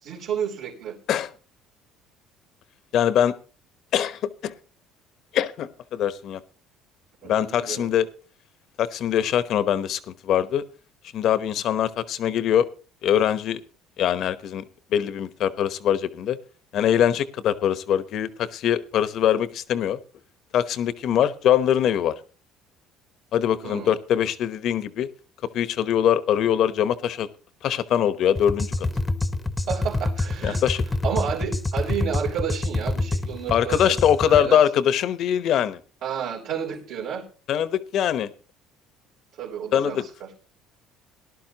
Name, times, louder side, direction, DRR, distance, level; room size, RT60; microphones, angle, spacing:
voice 1, 0.0-1.0 7.2-8.0 23.6-23.9 29.7-30.6 31.0-34.6 36.0-37.2 39.4-40.3, right 8 dB, 70° right, -7 dB, 3.7 m, -31 dB
voice 2, 2.9-3.3 3.9-4.5 5.3-6.4 7.2-8.1 8.8-10.6 11.1-12.7 13.0-13.6 14.0-14.6 14.9-16.4 16.7-20.0 20.5-22.1 23.3-25.1 25.5-27.3 27.6-28.9 30.4-30.8 33.5-35.8 37.5-38.3 39.7-40.0, left 10 dB, 55° left, 14 dB, 1.0 m, -22 dB
sound 1, 28.4-34.5, left 2 dB, 10° left, 0.9 m, -27 dB
18.5 x 11.5 x 3.0 m, 0.37 s
cardioid pair, 115°, 0 cm